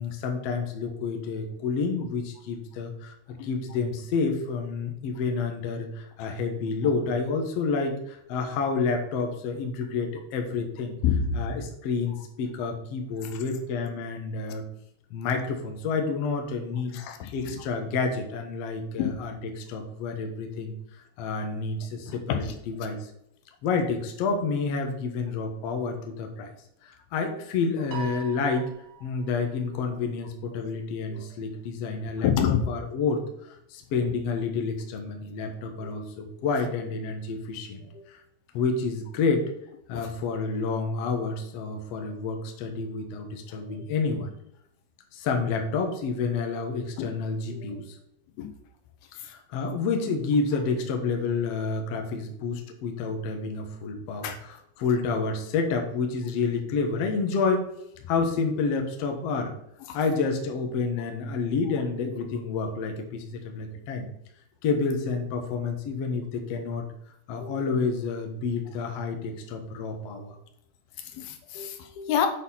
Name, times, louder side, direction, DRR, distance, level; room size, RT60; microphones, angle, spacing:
voice 1, 0.0-3.1 3.4-11.0 11.3-14.7 15.1-17.0 17.3-20.8 21.2-23.1 23.6-26.5 26.8-28.7 29.0-38.2 38.5-39.5 39.9-44.3 45.1-47.8 49.2-57.7 58.1-59.5 59.9-64.1 64.6-66.8 67.3-70.3, left 4 dB, 65° left, 4 dB, 1.7 m, -29 dB
voice 2, 11.0-11.4 16.9-17.6 19.0-19.2 22.1-22.6 30.5-30.7 31.1-31.3 32.2-32.6 35.8-35.9 37.8-38.0 39.9-40.1 42.0-42.1 43.6-43.7 47.0-47.1 47.5-47.8 48.4-48.5 49.2-49.3 54.2-54.4 59.9-60.0 67.4-67.6 71.0-72.3, left 8 dB, 90° left, 5 dB, 2.9 m, -29 dB
Piano, 27.9-29.5, right 10 dB, 80° right, 3.0 m, -41 dB
8.1 x 4.4 x 5.6 m, 0.77 s
omnidirectional pair, 4.3 m